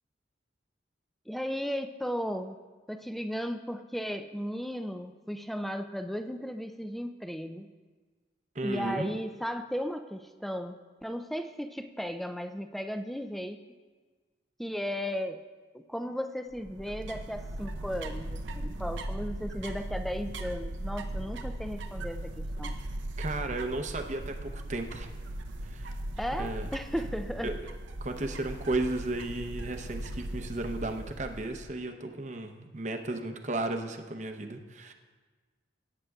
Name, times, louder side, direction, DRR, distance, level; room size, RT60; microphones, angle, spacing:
voice 1, 1.3-2.6 2.9-7.7 8.6-13.6 14.6-15.4 15.7-22.8 26.2-27.5, equal, ahead, 8 dB, 0.4 m, -35 dB
voice 2, 8.5-9.1 23.2-25.1 25.6-26.0 26.4-26.7 27.4-27.6 28.0-34.9, right 2 dB, 40° right, 6 dB, 0.7 m, -34 dB
sound 1, 16.5-31.8, right 1 dB, 85° right, 0.7 m, -38 dB
17.0 x 8.9 x 2.4 m, 1.4 s
head